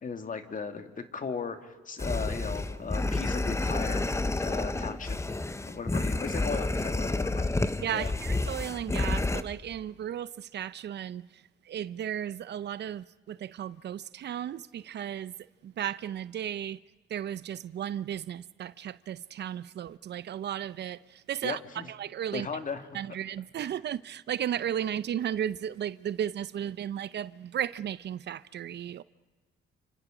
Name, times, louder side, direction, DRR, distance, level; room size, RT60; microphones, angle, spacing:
voice 1, 0.0-4.0 4.4-5.2 5.7-7.5 7.9-8.1 21.4-21.9 22.3-22.8 23.6-23.7, left 5 dB, 40° left, 2.3 m, -36 dB
sound 1, 2.0-9.4, left 2 dB, 15° left, 1.0 m, -30 dB
voice 2, 7.8-15.3 15.6-16.8 17.1-21.6 21.9-22.5 22.9-29.0, right 10 dB, 60° right, 0.7 m, -35 dB
30.0 x 27.0 x 5.1 m
cardioid pair, 90°, 20 cm